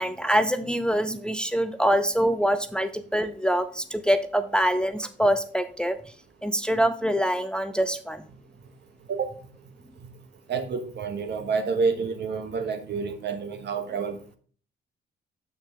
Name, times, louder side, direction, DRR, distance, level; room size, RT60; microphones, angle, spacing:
voice 1, 0.0-6.0 6.4-8.2, equal, 5° left, 9 dB, 0.6 m, -24 dB
voice 2, 10.5-14.4, right 5 dB, 60° right, 9 dB, 1.2 m, -28 dB
6.7 x 6.3 x 3.5 m, 0.43 s
cardioid pair, 90°, 20 cm